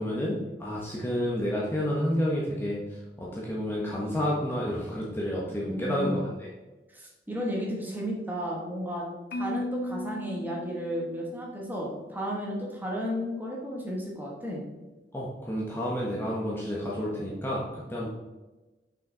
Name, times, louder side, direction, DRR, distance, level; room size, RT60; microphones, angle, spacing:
voice 1, 0.0-6.5 15.1-18.1, equal, 15° left, -5 dB, 1.0 m, -30 dB
voice 2, 5.7-6.2 6.9-9.0 9.3-14.6, equal, 10° right, -3 dB, 1.4 m, -33 dB
Marimba xylophone, 9.3-11.5, left 1 dB, 60° left, 0.5 m, -36 dB
6.2 x 5.9 x 3.8 m, 1.1 s
head